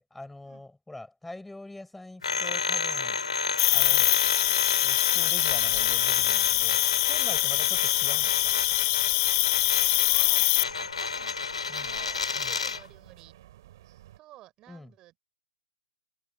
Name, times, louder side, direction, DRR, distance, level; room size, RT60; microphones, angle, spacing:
voice 1, 0.0-3.2 3.7-4.1 4.8-6.8 7.0-8.5 11.7-11.9 12.3-12.5 14.7-14.9, left 2 dB, 5° left, 6.5 m, -44 dB
sound 1, 2.2-12.9, left 5 dB, 85° left, 3.7 m, -31 dB
Cricket, 3.6-10.6, left 24 dB, 25° left, 1.0 m, -24 dB
sound 2, 5.1-14.2, right 14 dB, 40° right, 7.0 m, -51 dB
voice 2, 10.0-13.3 14.2-15.2, right 16 dB, 20° right, 5.9 m, -53 dB
hypercardioid pair, 155°, 3 cm